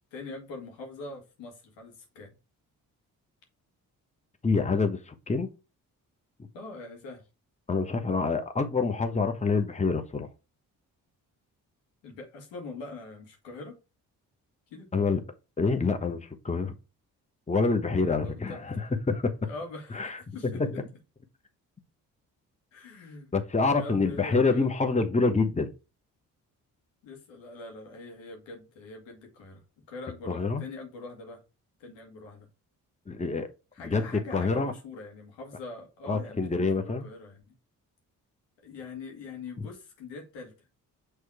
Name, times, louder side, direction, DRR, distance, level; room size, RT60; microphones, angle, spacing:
voice 1, 0.1-2.4 6.5-7.3 12.0-13.8 14.7-15.1 18.2-18.8 19.2-20.8 22.7-23.3 23.7-24.7 27.0-29.6 29.9-31.4 31.8-32.5 33.7-37.5 38.6-40.7, left 3 dB, 75° left, 1.9 m, -43 dB
voice 2, 4.4-5.5 7.7-10.3 14.9-15.2 15.6-16.7 17.5-19.3 19.9-20.2 20.6-20.7 23.3-25.7 30.3-30.6 33.1-33.5 33.8-34.7 36.1-37.0, left 4 dB, 15° left, 1.0 m, -26 dB
6.2 x 3.3 x 4.7 m
hypercardioid pair, 40°, 44 cm